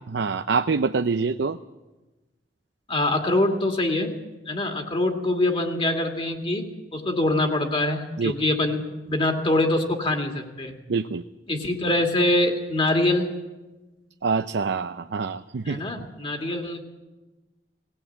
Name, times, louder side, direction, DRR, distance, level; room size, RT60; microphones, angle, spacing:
voice 1, 0.1-1.6 8.2-8.3 10.9-11.2 14.2-15.8, right 4 dB, 80° right, 9 dB, 0.6 m, -25 dB
voice 2, 2.9-4.2 4.5-10.7 11.5-13.4 15.6-16.8, left 1 dB, 30° left, 4 dB, 2.3 m, -24 dB
19.0 x 17.5 x 8.5 m, 1.1 s
head